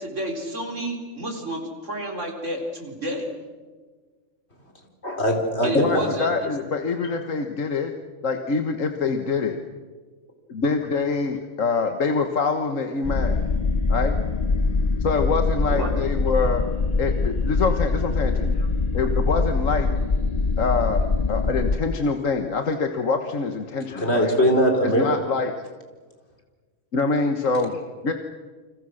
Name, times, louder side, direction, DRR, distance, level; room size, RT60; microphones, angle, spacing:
voice 1, 0.0-3.3 5.6-6.5 15.7-16.0, right 1 dB, 65° right, 2 dB, 4.6 m, -30 dB
voice 2, 5.0-6.3 24.0-25.1, equal, 55° left, 3 dB, 4.5 m, -21 dB
voice 3, 5.7-7.9 8.2-9.6 10.5-13.4 13.9-14.2 15.0-16.6 17.0-18.7 18.9-19.9 20.6-21.0 21.3-24.3 25.0-25.5 26.9-28.1, left 4 dB, 75° left, 6 dB, 1.7 m, -25 dB
sound 1, 13.0-21.8, left 3 dB, 35° left, 0.9 m, -23 dB
29.5 x 25.5 x 6.5 m, 1.4 s
omnidirectional pair, 1.4 m